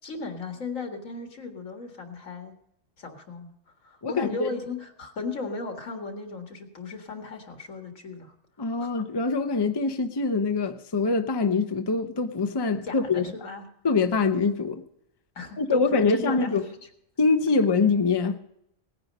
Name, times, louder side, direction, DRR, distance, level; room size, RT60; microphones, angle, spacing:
voice 1, 0.0-2.6 3.0-8.4 8.8-8.9 12.8-13.7 15.4-16.9, left 3 dB, 80° left, 2.3 m, -36 dB
voice 2, 4.0-4.5 8.6-13.2 13.8-14.8 15.6-16.6 17.2-18.4, left 4 dB, 25° left, 0.7 m, -24 dB
18.5 x 9.7 x 5.4 m
omnidirectional pair, 1.3 m